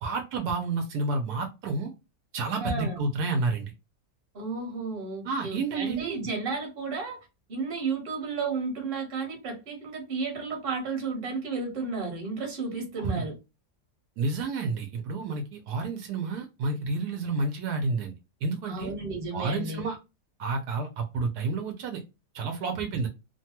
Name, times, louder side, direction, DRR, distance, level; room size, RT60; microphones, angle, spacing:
voice 1, 0.0-1.9 2.3-3.7 5.2-6.2 13.0-13.3 14.2-18.1 18.4-18.9 19.3-20.0 20.4-22.0 22.3-23.1, right 3 dB, 75° right, 1.1 m, -30 dB
voice 2, 2.6-3.0 4.3-7.2 7.5-13.4 18.7-19.8, right 4 dB, 40° right, 1.2 m, -33 dB
3.0 x 2.2 x 2.8 m
omnidirectional pair, 1.7 m